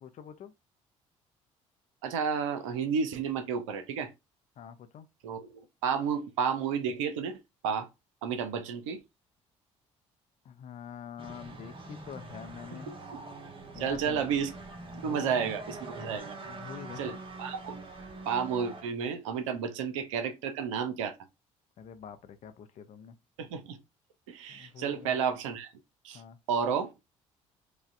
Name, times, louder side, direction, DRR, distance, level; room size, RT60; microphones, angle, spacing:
voice 1, 0.0-0.5 4.6-5.1 10.4-12.9 13.7-14.3 14.9-15.5 16.5-17.2 19.5-19.6 21.8-23.2 24.5-25.1 26.1-26.4, left 8 dB, 45° left, 0.5 m, -45 dB
voice 2, 2.0-4.1 5.2-7.4 7.6-7.9 8.2-9.0 12.9-13.2 13.8-14.5 15.0-16.4 17.0-17.9 18.3-21.2 23.4-23.8 24.3-25.7 26.0-26.2 26.5-26.9, right 7 dB, 75° right, 0.6 m, -31 dB
sound 1, 11.2-18.8, right 2 dB, 30° right, 1.0 m, -44 dB
4.8 x 2.1 x 2.5 m
figure-of-eight pair, 50°, 17 cm